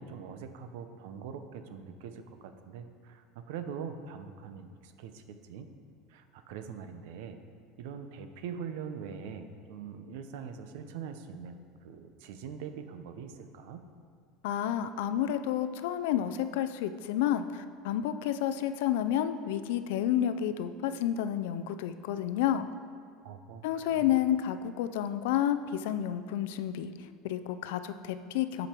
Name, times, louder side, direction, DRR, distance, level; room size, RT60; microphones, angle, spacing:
voice 1, 0.0-5.7 6.1-7.4 7.8-11.6 11.8-13.8 23.2-24.1, right 7 dB, 75° right, 8 dB, 0.7 m, -43 dB
voice 2, 14.4-22.7 23.6-28.7, left 10 dB, 80° left, 11 dB, 0.5 m, -30 dB
13.0 x 5.1 x 4.5 m, 2.1 s
cardioid pair, 170°, 0 cm